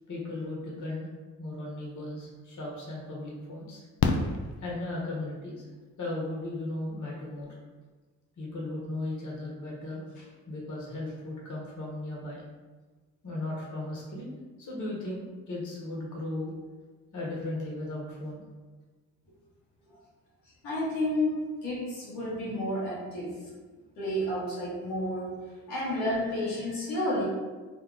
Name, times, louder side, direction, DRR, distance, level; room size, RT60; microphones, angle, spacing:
voice 1, 0.1-1.1 1.4-3.8 4.6-5.7 6.0-7.6 8.4-12.4 13.2-14.3 14.6-16.5 17.1-18.4 19.3-19.4, left 2 dB, 45° left, -4 dB, 1.3 m, -36 dB
Fireworks, 2.3-2.4 4.0-5.3 7.1-7.2 7.4-7.5, left 4 dB, 65° left, 0.5 m, -29 dB
voice 2, 20.6-23.4 24.0-25.4 25.7-27.2, left 1 dB, 80° left, -8 dB, 1.1 m, -31 dB
2.7 x 2.3 x 3.8 m, 1.3 s
hypercardioid pair, 50°, 41 cm